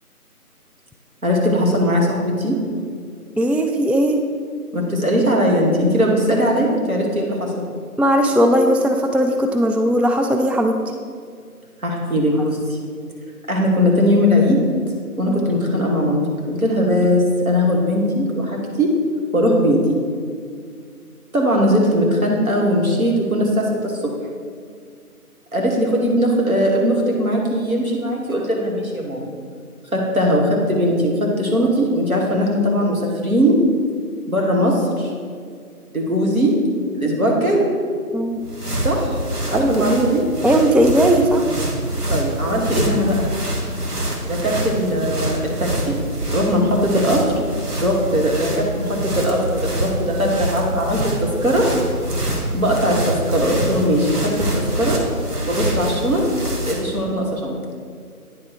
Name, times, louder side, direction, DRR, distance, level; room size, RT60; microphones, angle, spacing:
voice 1, 1.2-2.6 4.7-7.5 11.8-12.8 13.5-14.6 15.2-18.9 19.3-20.0 21.3-24.1 25.5-29.3 29.9-33.6 34.3-35.1 35.9-36.6 36.9-37.7 38.8-39.2 39.5-40.2 42.1-43.3 44.2-46.0 46.3-47.2 47.8-51.7 52.5-55.0 55.4-56.2 56.6-57.6, equal, 65° right, -1 dB, 1.6 m, -19 dB
voice 2, 3.4-4.2 8.0-10.8 15.3-15.5 38.1-38.4 39.5-39.8 40.4-41.4, equal, 5° right, 4 dB, 0.3 m, -17 dB
sound 1, 38.2-57.0, right 1 dB, 80° right, 1.4 m, -25 dB
9.5 x 3.7 x 4.7 m, 2.2 s
figure-of-eight pair, 175°, 46 cm